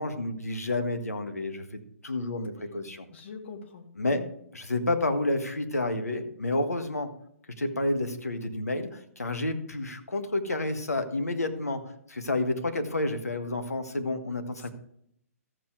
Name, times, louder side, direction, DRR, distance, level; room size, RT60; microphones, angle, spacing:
voice 1, 0.0-3.0 4.0-4.2 4.5-7.1 7.6-11.8 12.1-14.7, left 2 dB, 80° left, 7 dB, 1.6 m, -30 dB
voice 2, 3.1-4.3 14.6-14.7, left 5 dB, 50° left, 4 dB, 2.0 m, -44 dB
14.0 x 7.7 x 3.3 m, 0.70 s
figure-of-eight pair, 130°, 8 cm